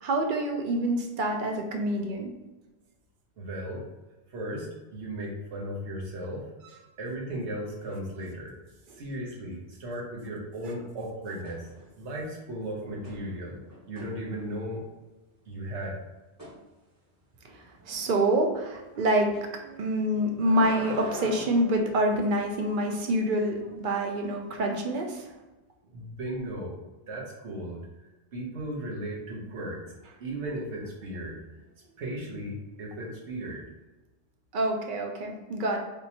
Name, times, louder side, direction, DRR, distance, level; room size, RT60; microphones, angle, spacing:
voice 1, 0.0-2.3 17.5-25.3 34.5-35.8, right 1 dB, 55° right, 3 dB, 0.7 m, -27 dB
voice 2, 3.4-3.8 4.3-6.5 7.0-8.5 8.9-11.7 12.0-13.6 13.9-14.8 15.5-16.0 25.9-26.8 27.1-27.8 28.3-29.9 30.2-31.3 32.0-33.6, right 1 dB, 85° right, -1 dB, 1.2 m, -36 dB
sound 1, 11.4-12.1 12.4-14.8 16.4-16.6 20.0-22.5 24.7-24.8, equal, 15° right, 1.0 m, -43 dB
3.6 x 2.8 x 2.8 m, 1.1 s
omnidirectional pair, 1.1 m